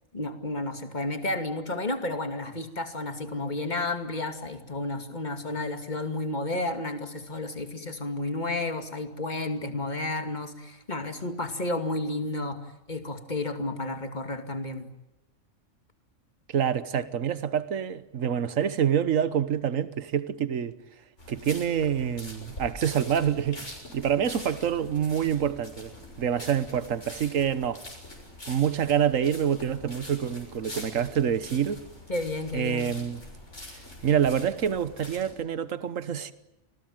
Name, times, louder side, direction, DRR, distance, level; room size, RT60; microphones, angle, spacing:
voice 1, 0.1-12.6 12.9-14.9 32.1-33.0, left 2 dB, 35° left, 2.6 m, -32 dB
voice 2, 16.5-20.7 21.3-25.9 26.2-27.8 28.5-31.8 32.5-33.2 34.0-36.3, right 8 dB, 75° right, 1.6 m, -26 dB
sound 1, 21.2-35.3, left 1 dB, 60° left, 7.0 m, -44 dB
29.5 x 20.5 x 9.2 m
omnidirectional pair, 1.4 m